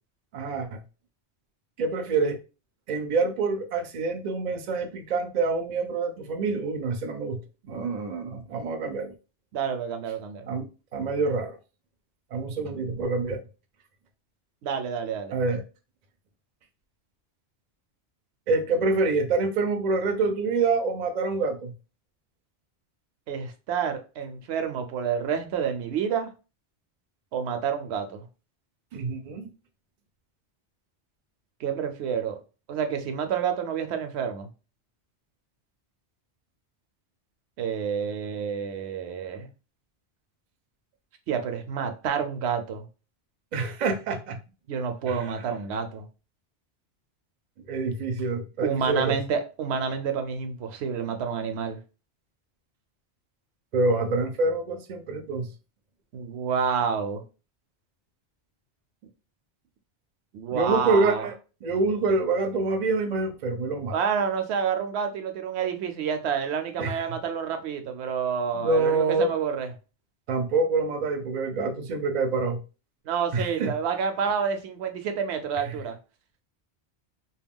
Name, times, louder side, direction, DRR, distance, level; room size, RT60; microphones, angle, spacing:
voice 1, 0.3-0.8 1.8-2.4 2.9-9.1 10.5-10.7 10.9-11.6 12.3-13.4 15.3-15.6 18.5-21.7 28.9-29.5 43.5-44.4 45.1-45.4 47.7-49.2 53.7-55.5 60.5-61.3 61.6-63.9 66.8-67.1 68.5-69.3 70.3-72.6 73.3-73.7 75.6-75.8, right 3 dB, 55° right, 0.5 m, -26 dB
voice 2, 9.5-10.5 14.6-15.3 23.3-26.3 27.3-28.2 31.6-32.4 32.7-34.5 37.6-39.5 41.3-42.9 44.7-46.1 48.6-51.8 56.1-57.2 60.3-61.3 63.9-69.7 73.1-76.0, right 7 dB, 75° right, 0.8 m, -29 dB
2.3 x 2.2 x 3.5 m
omnidirectional pair, 1.1 m